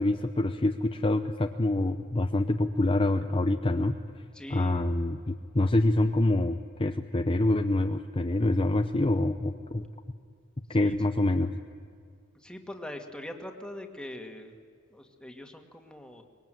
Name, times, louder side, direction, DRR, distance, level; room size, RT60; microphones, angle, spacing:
voice 1, 0.0-4.2 4.5-9.8 10.7-11.5, left 2 dB, 25° left, 6 dB, 0.8 m, -26 dB
voice 2, 4.3-4.9 10.7-11.0 12.3-14.6 14.9-16.2, left 1 dB, 5° left, 4 dB, 2.1 m, -42 dB
24.5 x 21.5 x 9.2 m, 2.2 s
head